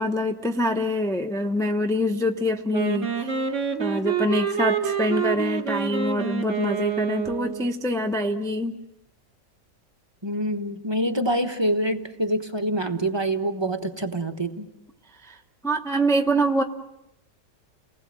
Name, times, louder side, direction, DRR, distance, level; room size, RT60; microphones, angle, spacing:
voice 1, 0.0-3.5 3.8-8.8 15.2-15.4 15.6-16.6, equal, 5° left, 4 dB, 0.5 m, -25 dB
Wind instrument woodwind instrument, 2.7-7.7, right 7 dB, 45° right, 2.3 m, -27 dB
voice 2, 10.2-14.7, right 1 dB, 15° right, 5 dB, 1.1 m, -26 dB
30.0 x 19.5 x 7.6 m, 0.87 s
omnidirectional pair, 1.9 m